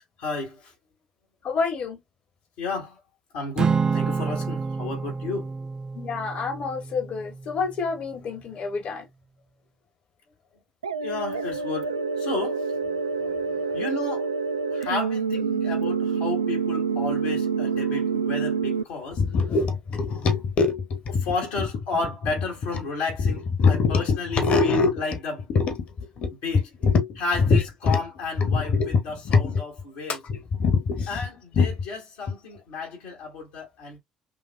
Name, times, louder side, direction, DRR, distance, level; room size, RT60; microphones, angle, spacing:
voice 1, 0.2-0.7 2.6-3.0 3.3-5.5 11.0-12.6 13.7-14.3 14.7-19.2 21.3-25.3 26.4-26.6 27.2-30.2 31.1-34.0, left 3 dB, 70° left, 2.0 m, -32 dB
voice 2, 1.4-2.0 5.9-9.1 13.0-13.4 13.7-13.8 19.1-21.3 23.2-25.0 25.5-26.3 26.8-28.0 28.4-29.0 29.2-29.6 30.1-31.2 31.5-31.7, left 4 dB, 50° left, 1.6 m, -24 dB
Acoustic guitar / Strum, 3.6-8.0, right 5 dB, 30° right, 0.5 m, -29 dB
sound 1, 10.8-18.8, right 5 dB, 85° right, 0.3 m, -27 dB
5.6 x 2.6 x 2.3 m
figure-of-eight pair, 55°, 3 cm